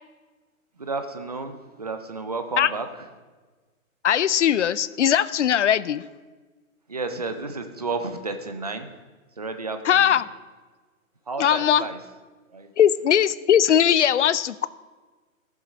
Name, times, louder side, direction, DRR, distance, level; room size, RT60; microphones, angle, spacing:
voice 1, 0.8-2.9 6.9-8.9 9.4-10.2 11.3-12.0 12.5-12.7, right 3 dB, 30° right, 7 dB, 0.5 m, -32 dB
voice 2, 4.0-6.1 9.8-10.3 11.4-11.9 12.8-14.7, left 9 dB, 60° left, 17 dB, 0.5 m, -20 dB
14.5 x 7.3 x 5.3 m, 1.4 s
hypercardioid pair, 175°, 41 cm